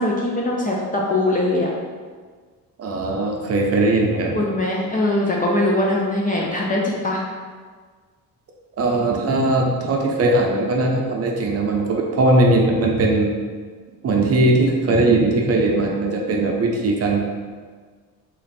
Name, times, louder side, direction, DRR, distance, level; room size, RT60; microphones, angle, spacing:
voice 1, 0.0-1.7 4.4-7.2, left 1 dB, 25° left, -2 dB, 0.4 m, -21 dB
voice 2, 2.8-4.4 8.8-13.3 14.0-17.2, right 2 dB, 40° right, 0 dB, 0.6 m, -19 dB
3.1 x 2.5 x 4.0 m, 1.6 s
cardioid pair, 125°, 37 cm